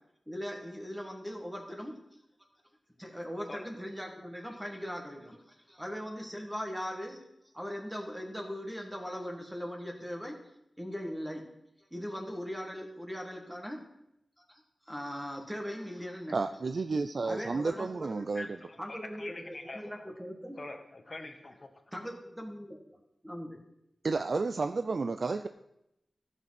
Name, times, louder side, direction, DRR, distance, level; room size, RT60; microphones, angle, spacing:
voice 1, 0.3-1.9 3.0-7.2 7.5-10.3 10.8-11.4 11.8-13.8 14.4-16.4 17.2-18.2 18.8-20.6 21.9-23.0 23.2-23.6, equal, 5° right, 1 dB, 1.8 m, -40 dB
voice 2, 16.3-18.5 24.0-25.5, right 4 dB, 60° right, 9 dB, 0.4 m, -31 dB
voice 3, 18.3-20.0 20.5-21.7, left 2 dB, 40° left, 6 dB, 1.4 m, -44 dB
14.0 x 6.4 x 5.8 m, 0.82 s
wide cardioid pair, 90°, 0 cm